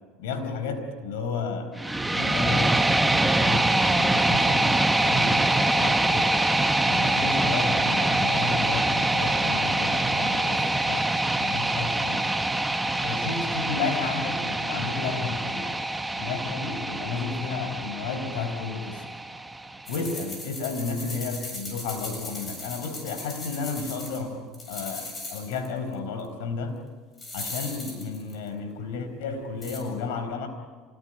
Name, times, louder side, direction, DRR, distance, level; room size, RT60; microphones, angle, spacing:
voice 1, 0.2-1.7 2.1-2.8 3.3-4.8 5.1-6.3 6.9-12.3 13.0-15.8 16.2-19.1 19.9-26.8 27.3-30.5, left 4 dB, 85° left, 8 dB, 4.5 m, -32 dB
sound 1, 1.8-19.8, right 2 dB, 5° right, 1.2 m, -24 dB
sound 2, 19.9-24.2 24.5-25.7 25.9-26.0 27.2-28.5 29.6-29.8, left 2 dB, 25° left, 7.8 m, -38 dB
26.5 x 20.0 x 9.1 m, 1.5 s
supercardioid pair, 110°, 0 cm